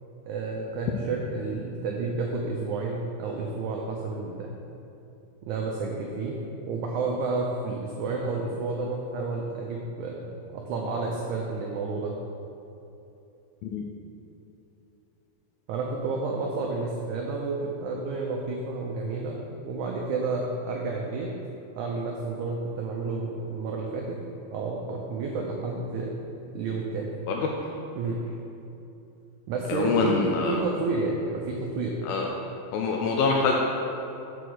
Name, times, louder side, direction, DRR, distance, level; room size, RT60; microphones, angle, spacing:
voice 1, 0.3-4.5 5.4-6.4 6.6-10.3 10.5-12.2 15.7-21.3 21.8-24.2 24.5-26.1 26.5-27.1 28.0-28.2 29.5-30.2 30.5-31.9, right 3 dB, 85° right, -1 dB, 1.7 m, -30 dB
voice 2, 29.7-30.6 32.0-32.3 32.7-33.5, left 4 dB, 85° left, 0 dB, 2.4 m, -25 dB
7.1 x 4.9 x 6.1 m, 2.8 s
omnidirectional pair, 4.2 m